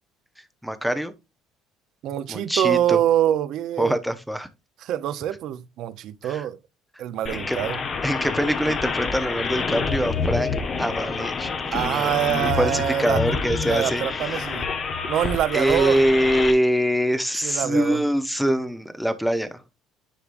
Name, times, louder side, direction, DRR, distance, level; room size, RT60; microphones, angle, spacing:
voice 1, 0.6-1.1 2.3-3.0 3.8-4.5 6.2-6.4 7.5-7.6 8.0-10.5 10.8-12.1 12.4-14.5 15.5-19.5, equal, ahead, 0.7 m, -24 dB
voice 2, 2.0-4.0 4.8-6.6 7.0-7.8 11.7-13.2 13.6-14.7 15.1-16.0 17.3-18.0, right 11 dB, 50° right, 0.6 m, -25 dB
sound 1, 7.3-16.5, left 5 dB, 25° left, 0.9 m, -28 dB
10.0 x 4.8 x 2.5 m
cardioid pair, 175°, 0 cm